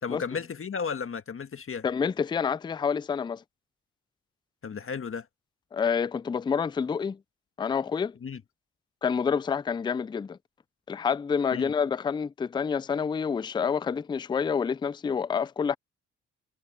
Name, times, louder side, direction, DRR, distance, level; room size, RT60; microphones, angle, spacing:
voice 1, 0.0-1.8 4.6-5.3 8.2-8.4 11.5-11.7, left 6 dB, 45° left, 1.6 m, -34 dB
voice 2, 1.8-3.4 5.7-7.2 7.6-8.1 9.0-10.4 10.9-15.8, left 6 dB, 15° left, 0.3 m, -28 dB
supercardioid pair, 60°, 31 cm